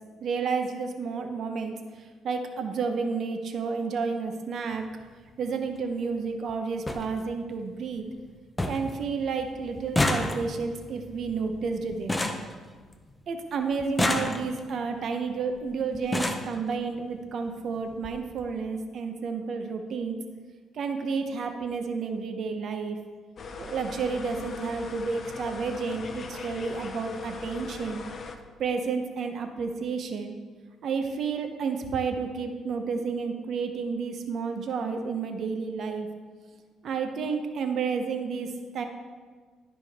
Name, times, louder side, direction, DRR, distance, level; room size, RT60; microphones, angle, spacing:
voice 1, 0.2-4.9 5.4-8.1 8.7-12.2 13.3-20.2 20.7-23.0 23.6-28.0 28.6-30.3 30.8-36.1 36.8-38.9, right 5 dB, 55° right, 6 dB, 0.7 m, -31 dB
sound 1, 4.7-4.9 6.2-6.3 6.5-6.6 6.9-7.0 7.5-8.0 8.2-8.3 8.6-9.0 9.2-13.2 13.8-14.8 15.6-15.7 15.9-16.5 17.5-17.6 17.9-18.1 18.4-18.5, left 1 dB, 10° left, 0.6 m, -30 dB
sound 2, 23.4-28.4, left 4 dB, 45° left, 0.7 m, -39 dB
12.0 x 5.1 x 3.5 m, 1.5 s
cardioid pair, 115°, 0 cm